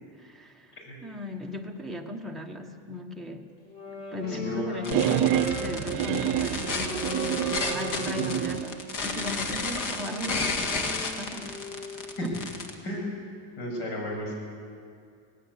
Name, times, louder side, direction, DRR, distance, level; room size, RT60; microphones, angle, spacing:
voice 1, 0.2-0.7 1.0-3.5 4.1-8.8 9.0-11.6 12.2-12.3, left 1 dB, ahead, 6 dB, 1.4 m, -36 dB
Wind instrument woodwind instrument, 3.6-12.3, left 2 dB, 80° left, 6.7 m, -39 dB
voice 2, 4.4-5.1 12.2-12.3 12.8-13.1 13.6-14.4, left 1 dB, 60° left, 0 dB, 7.6 m, -33 dB
sound 1, 4.8-12.7, left 3 dB, 45° left, 2.1 m, -32 dB
sound 2, 4.9-8.7, right 12 dB, 45° right, 0.8 m, -28 dB
18.5 x 16.5 x 8.5 m, 2.3 s
cardioid pair, 130°, 46 cm